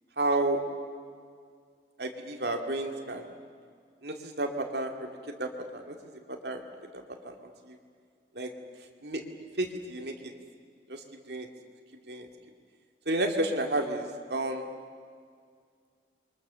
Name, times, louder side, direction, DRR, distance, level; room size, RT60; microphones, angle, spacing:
voice 1, 0.2-0.6 2.0-3.3 4.0-5.1 5.4-5.9 6.3-6.6 7.2-7.8 8.3-8.5 9.0-9.2 9.6-10.3 10.9-11.5 12.1-12.3 13.1-14.7, right 2 dB, 65° right, 3 dB, 2.5 m, -31 dB
28.0 x 23.5 x 6.9 m, 2.1 s
head